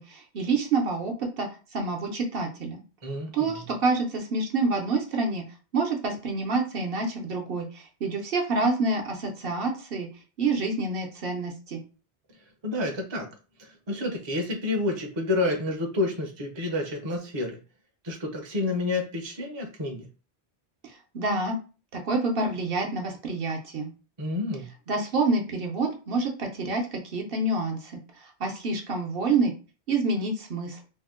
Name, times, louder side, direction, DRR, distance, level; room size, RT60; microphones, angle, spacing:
voice 1, 0.0-2.8 3.3-5.4 5.7-10.1 10.4-11.8 21.1-21.6 21.9-23.9 24.9-28.0 28.4-29.5 29.9-30.8, right 3 dB, 65° right, 2 dB, 0.9 m, -27 dB
voice 2, 3.0-3.6 12.6-13.3 13.9-17.5 18.0-20.1 24.2-24.7, left 2 dB, 30° right, 2 dB, 0.6 m, -29 dB
2.8 x 2.1 x 3.6 m, 0.35 s
omnidirectional pair, 1.1 m